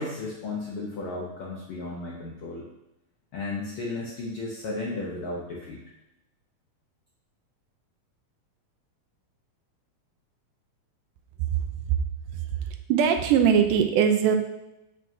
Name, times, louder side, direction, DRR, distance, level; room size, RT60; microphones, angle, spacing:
voice 1, 0.0-2.7 3.3-5.8, left 2 dB, 75° left, -3 dB, 1.2 m, -34 dB
voice 2, 11.5-12.0 12.9-14.4, right 8 dB, 85° right, 6 dB, 2.2 m, -21 dB
7.4 x 6.1 x 2.7 m, 0.92 s
omnidirectional pair, 3.6 m